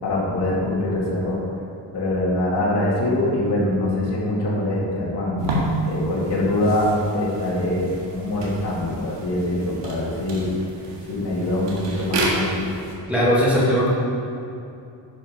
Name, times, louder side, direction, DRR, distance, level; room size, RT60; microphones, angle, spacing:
voice 1, 0.0-1.4 1.9-5.5 5.9-10.5 11.1-12.6, left 1 dB, 60° left, -5 dB, 2.5 m, -23 dB
sound 1, 5.4-12.9, right 2 dB, 65° right, 1.9 m, -30 dB
voice 2, 13.1-13.9, equal, 5° right, -8 dB, 1.8 m, -18 dB
10.5 x 5.7 x 5.4 m, 2.7 s
wide cardioid pair, 170°, 46 cm